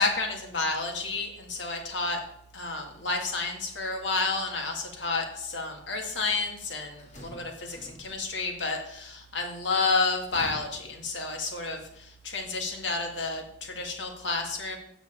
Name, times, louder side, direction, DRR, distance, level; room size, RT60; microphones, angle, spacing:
voice 1, 0.0-2.2 2.5-14.8, left 3 dB, 80° left, 3 dB, 1.9 m, -30 dB
sound 1, 6.1-8.6 9.9-11.7, equal, 40° left, 2.3 m, -49 dB
7.1 x 6.1 x 7.1 m, 0.72 s
head